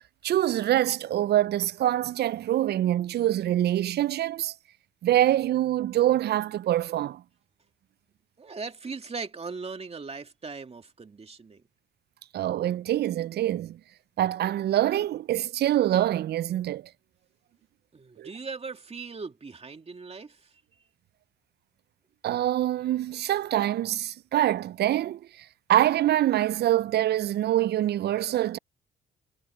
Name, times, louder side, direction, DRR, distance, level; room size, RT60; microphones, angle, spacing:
voice 1, 0.2-4.5 5.0-7.2 12.3-13.8 14.2-16.8 18.2-18.3 22.2-25.2 25.7-28.6, right 13 dB, 55° right, 0.4 m, -25 dB
voice 2, 8.4-11.6 17.9-20.6, right 4 dB, 30° right, 2.3 m, -39 dB
cardioid pair, 90°, 20 cm